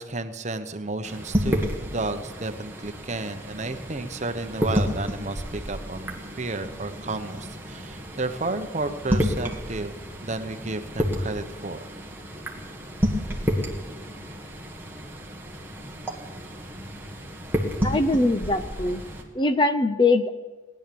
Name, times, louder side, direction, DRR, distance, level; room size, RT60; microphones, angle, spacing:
voice 1, 0.0-9.9 10.2-11.9, right 2 dB, 35° right, 8 dB, 1.0 m, -32 dB
sound 1, 1.0-19.2, equal, 10° right, 1.7 m, -31 dB
voice 2, 17.8-19.0 19.3-20.3, left 2 dB, 25° left, 10 dB, 0.6 m, -22 dB
19.0 x 10.5 x 7.0 m, 1.3 s
head